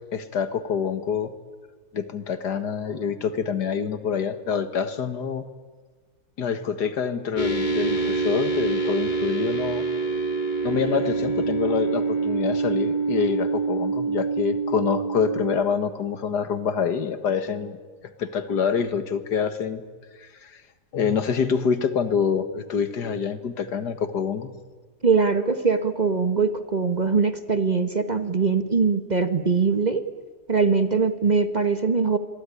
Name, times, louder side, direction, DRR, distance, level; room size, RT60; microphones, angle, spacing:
voice 1, 0.1-1.3 1.9-5.5 6.4-9.9 10.6-17.8 18.0-19.8 20.2-20.6 20.9-24.5, left 6 dB, 85° left, 11 dB, 2.2 m, -26 dB
sound 1, 7.4-15.6, right 4 dB, 30° left, 1.4 m, -26 dB
voice 2, 25.0-30.0 30.5-32.2, right 5 dB, 30° right, 10 dB, 1.3 m, -22 dB
27.0 x 22.5 x 9.9 m, 1.4 s
omnidirectional pair, 1.7 m